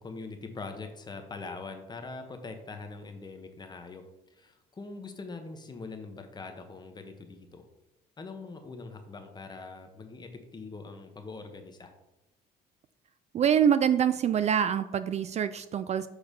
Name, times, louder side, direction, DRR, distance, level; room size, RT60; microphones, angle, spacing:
voice 1, 0.0-7.7 8.2-11.9, left 3 dB, 25° left, 6 dB, 1.1 m, -43 dB
voice 2, 13.3-16.1, right 8 dB, 40° right, 13 dB, 0.4 m, -25 dB
6.5 x 4.7 x 5.2 m, 0.92 s
cardioid pair, 110°, 17 cm